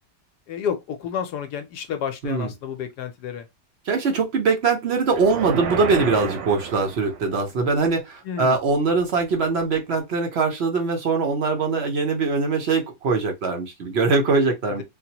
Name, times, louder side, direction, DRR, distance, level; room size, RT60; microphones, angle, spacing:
voice 1, 0.5-3.5 8.2-8.5 14.8-14.9, left 8 dB, 70° left, 1.1 m, -30 dB
voice 2, 3.8-14.8, right 4 dB, 70° right, 0.6 m, -22 dB
sound 1, 5.1-7.4, right 7 dB, 90° right, 1.4 m, -31 dB
3.7 x 2.1 x 2.8 m
omnidirectional pair, 1.9 m